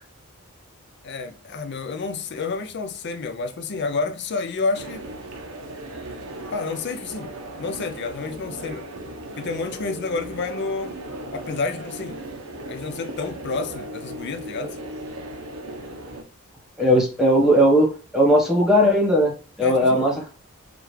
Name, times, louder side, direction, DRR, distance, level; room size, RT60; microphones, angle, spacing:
voice 1, 1.0-5.1 6.5-8.9 9.4-10.9 11.3-12.2 12.7-14.8 19.6-20.0, left 4 dB, 55° left, 0.6 m, -29 dB
sound 1, 4.7-16.2, right 1 dB, 85° right, 0.8 m, -37 dB
voice 2, 16.8-20.3, equal, ahead, 1.1 m, -18 dB
4.9 x 2.4 x 3.2 m
head